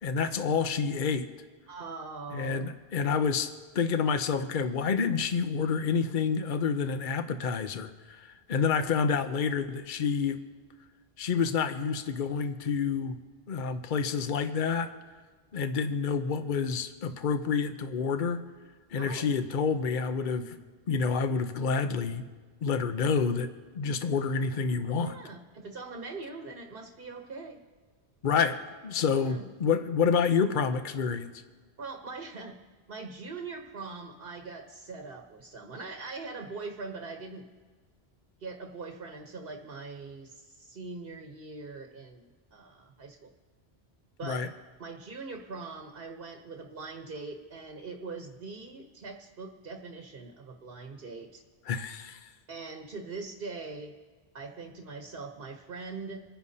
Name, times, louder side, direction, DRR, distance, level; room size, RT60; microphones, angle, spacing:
voice 1, 0.0-1.3 2.3-3.5 3.7-10.4 11.2-13.2 13.5-14.9 15.5-18.4 18.9-20.6 20.9-22.2 22.6-23.5 23.8-25.2 28.2-31.3 44.2-44.5 51.7-52.2, left 5 dB, 55° left, 9 dB, 0.8 m, -28 dB
voice 2, 1.7-2.6 19.0-19.3 24.9-27.6 29.1-29.4 31.8-32.6 32.9-37.4 38.4-43.3 44.2-44.5 44.8-51.4 52.5-53.9 54.3-56.2, right 3 dB, 65° right, 3 dB, 1.2 m, -42 dB
27.0 x 10.0 x 2.8 m, 1.5 s
omnidirectional pair, 1.0 m